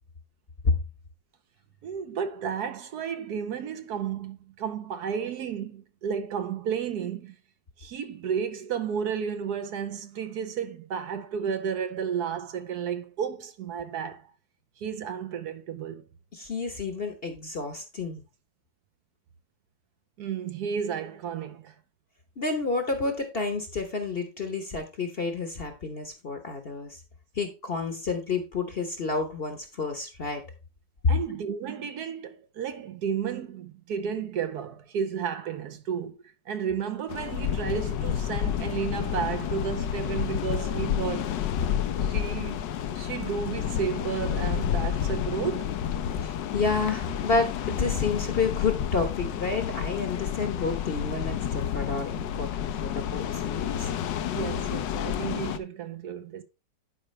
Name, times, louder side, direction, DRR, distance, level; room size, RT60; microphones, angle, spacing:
voice 1, 1.8-7.3 7.8-14.3 14.8-16.0 20.2-21.7 31.1-36.2 36.5-41.3 42.0-42.6 42.9-45.7 54.3-56.4, right 7 dB, 70° right, 1.2 m, -32 dB
voice 2, 16.3-18.2 22.4-27.0 27.4-30.4 46.1-53.9, left 4 dB, 40° left, 1.0 m, -30 dB
sound 1, 37.1-55.6, left 9 dB, 80° left, 1.4 m, -30 dB
11.0 x 4.9 x 3.2 m
omnidirectional pair, 2.0 m